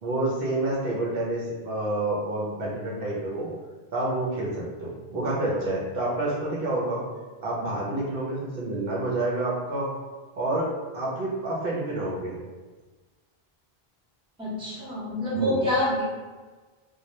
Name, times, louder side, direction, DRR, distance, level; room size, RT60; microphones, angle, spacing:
voice 1, 0.0-3.5 3.9-7.0 7.4-9.9 10.4-12.4 15.3-15.6, right 2 dB, 70° right, -5 dB, 0.8 m, -28 dB
voice 2, 14.4-16.0, left 1 dB, 5° right, -9 dB, 0.6 m, -26 dB
2.2 x 2.1 x 2.8 m, 1.3 s
omnidirectional pair, 1.0 m